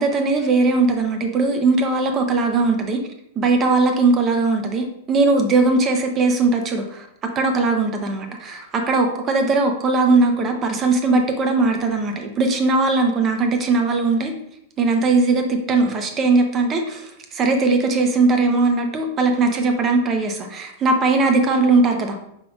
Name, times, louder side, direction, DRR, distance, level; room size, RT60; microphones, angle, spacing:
voice 1, 0.0-3.0 3.4-14.3 14.8-22.2, right 3 dB, 30° right, 4 dB, 0.7 m, -19 dB
4.9 x 3.6 x 2.4 m, 0.76 s
hypercardioid pair, 110°, 0 cm